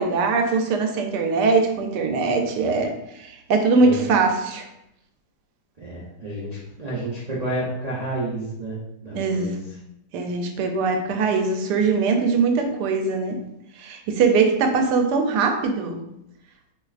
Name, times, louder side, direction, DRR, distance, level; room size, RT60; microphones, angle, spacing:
voice 1, 0.0-4.7 9.1-9.6 10.1-13.4 13.8-16.0, right 4 dB, 80° right, 4 dB, 1.2 m, -21 dB
voice 2, 5.8-8.8 9.0-9.5, right 1 dB, 55° right, -8 dB, 0.4 m, -30 dB
3.9 x 3.0 x 2.4 m, 0.81 s
omnidirectional pair, 1.8 m